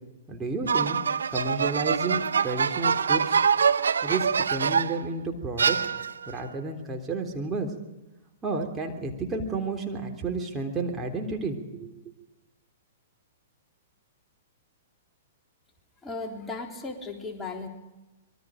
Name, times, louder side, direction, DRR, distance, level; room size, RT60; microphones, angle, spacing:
voice 1, 0.3-1.0 1.3-3.4 4.0-5.8 6.3-7.7 8.4-11.9, right 3 dB, 15° right, 1 dB, 3.6 m, -31 dB
sound 1, 0.7-5.1 5.6-6.3, right 6 dB, 70° right, 0.8 m, -24 dB
voice 2, 16.0-17.7, left 3 dB, 10° left, 0 dB, 3.6 m, -36 dB
26.5 x 23.0 x 5.2 m, 1.0 s
figure-of-eight pair, 110°, 0 cm